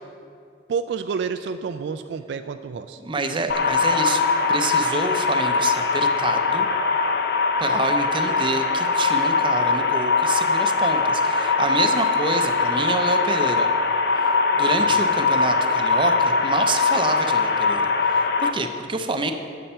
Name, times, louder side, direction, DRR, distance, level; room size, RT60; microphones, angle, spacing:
voice 1, 0.7-3.0 14.8-15.0, right 5 dB, 70° right, 9 dB, 0.3 m, -29 dB
voice 2, 3.0-6.7 7.6-13.7 14.2-19.3, right 2 dB, 30° right, 6 dB, 0.6 m, -27 dB
sound 1, 3.5-18.5, left 4 dB, 65° left, 0.7 m, -21 dB
8.6 x 7.8 x 5.6 m, 2.4 s
head